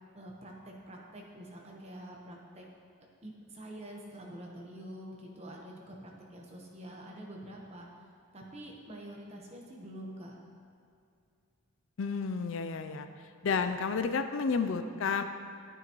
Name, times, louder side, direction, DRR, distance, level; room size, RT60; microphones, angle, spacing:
voice 1, 0.1-2.7 3.2-7.9 8.3-10.4, right 1 dB, 30° right, -1 dB, 1.1 m, -46 dB
voice 2, 12.0-13.1 13.4-15.2, left 5 dB, 65° left, 9 dB, 0.4 m, -31 dB
9.8 x 8.9 x 3.0 m, 2.4 s
head